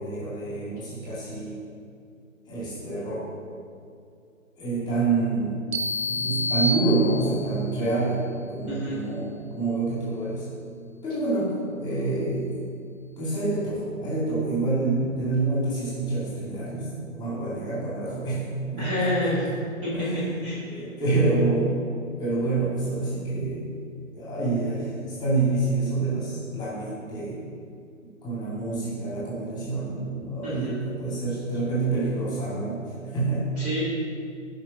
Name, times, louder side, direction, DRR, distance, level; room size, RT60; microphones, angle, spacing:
voice 1, 0.0-1.6 2.5-3.3 4.5-5.6 6.0-10.5 11.0-12.6 13.2-19.6 19.9-21.8 22.2-23.7 24.1-24.9 25.2-27.4 28.2-33.6, right 3 dB, 10° left, -8 dB, 2.4 m, -27 dB
sound 1, 5.7-7.6, left 1 dB, 50° right, 0.7 m, -28 dB
voice 2, 8.7-9.0 18.8-19.5 19.8-20.1 20.4-20.6 21.7-21.8 30.4-30.8 33.6-33.8, left 1 dB, 15° right, -9 dB, 2.1 m, -28 dB
16.0 x 5.4 x 4.1 m, 2.4 s
figure-of-eight pair, 135°, 40 cm